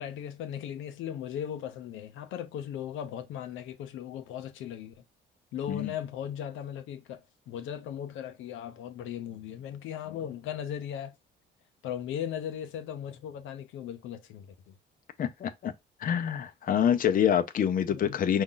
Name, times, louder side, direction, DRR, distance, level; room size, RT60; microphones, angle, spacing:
voice 1, 0.0-4.9 5.5-11.2 11.8-14.5 17.9-18.2, left 9 dB, 85° left, 0.7 m, -37 dB
voice 2, 15.2-15.7 16.0-18.4, left 9 dB, 45° left, 0.6 m, -26 dB
5.2 x 2.4 x 3.8 m
cardioid pair, 105°, 20 cm